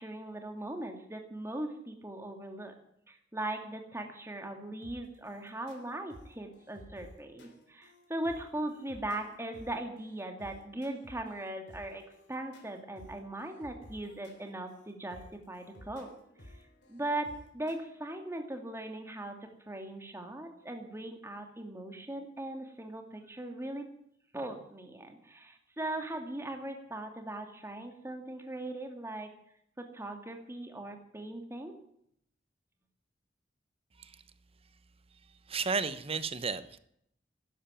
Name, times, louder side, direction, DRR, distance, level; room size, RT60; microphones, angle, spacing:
voice 1, 0.0-2.7 3.1-16.1 16.5-16.6 16.9-23.9 24.3-29.3 29.8-31.8, right 1 dB, 15° right, 4 dB, 2.3 m, -39 dB
sound 1, 4.8-17.8, left 1 dB, 75° left, 3.5 m, -55 dB
voice 2, 35.5-36.8, right 4 dB, 35° right, 13 dB, 0.9 m, -33 dB
12.5 x 11.0 x 8.9 m, 0.72 s
head